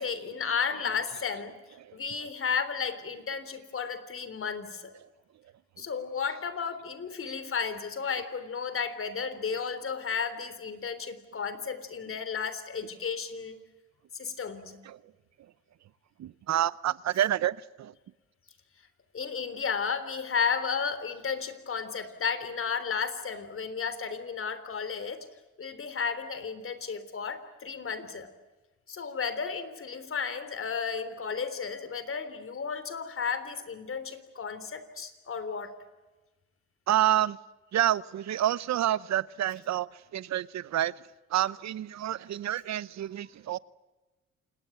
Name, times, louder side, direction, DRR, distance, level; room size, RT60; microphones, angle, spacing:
voice 1, 0.0-1.5 1.9-4.9 5.8-13.6 14.1-14.8 19.1-25.3 25.6-28.3 28.9-35.7, left 6 dB, 45° left, 13 dB, 3.6 m, -33 dB
voice 2, 16.2-17.9 36.9-37.4 37.7-40.9 41.3-43.6, right 12 dB, 65° right, 19 dB, 0.8 m, -28 dB
28.5 x 19.5 x 9.3 m, 1.2 s
cardioid pair, 90°, 30 cm